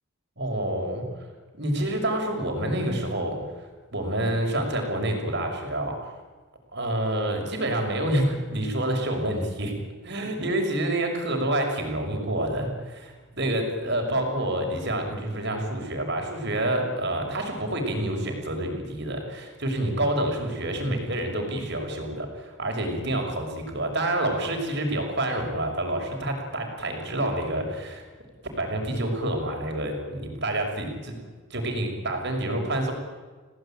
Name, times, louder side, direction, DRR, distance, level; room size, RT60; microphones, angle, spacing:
voice 1, 0.4-1.0 1.5-3.4 3.9-6.1 6.7-9.8 10.0-28.0 28.4-31.1 31.5-32.9, right 1 dB, 50° right, 3 dB, 6.2 m, -28 dB
29.0 x 18.5 x 9.1 m, 1.4 s
head